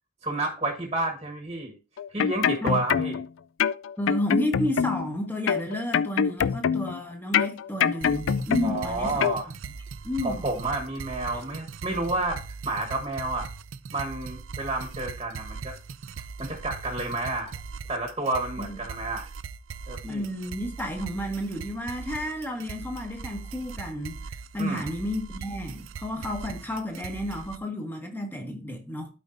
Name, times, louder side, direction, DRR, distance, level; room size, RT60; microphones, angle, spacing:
voice 1, 0.2-1.8 2.1-3.2 8.6-9.5 10.2-13.5 13.9-15.7 16.4-17.5 17.9-19.3 19.9-20.2 24.6-24.9, right 2 dB, 30° right, 1.3 m, -30 dB
sound 1, 2.0-3.3 3.6-5.1 5.5-7.0 7.3-8.9 9.2-9.4, left 7 dB, 80° left, 0.4 m, -25 dB
voice 2, 4.0-9.3 10.0-10.4 18.6-18.8 20.0-24.2 24.5-29.1, equal, 10° left, 1.3 m, -31 dB
sound 2, 8.0-27.6, right 5 dB, 90° right, 0.5 m, -40 dB
12.5 x 5.1 x 2.6 m
head